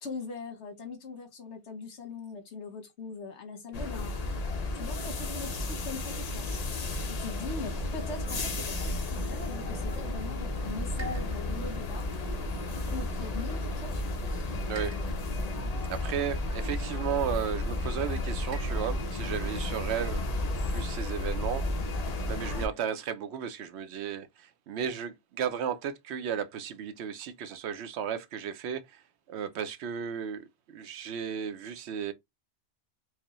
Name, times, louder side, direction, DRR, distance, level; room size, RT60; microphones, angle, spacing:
voice 1, 0.0-4.1 4.7-6.6 7.1-12.1 12.9-14.0 14.9-15.1, left 3 dB, 75° left, 1.3 m, -41 dB
sound 1, 3.7-22.7, left 2 dB, 40° left, 0.7 m, -33 dB
sound 2, 7.7-19.9, right 3 dB, 30° right, 0.6 m, -45 dB
voice 2, 15.9-20.2 20.7-21.6 22.3-29.0 29.3-30.5 30.7-32.1, right 8 dB, 75° right, 0.8 m, -34 dB
4.7 x 2.1 x 3.0 m
omnidirectional pair, 1.2 m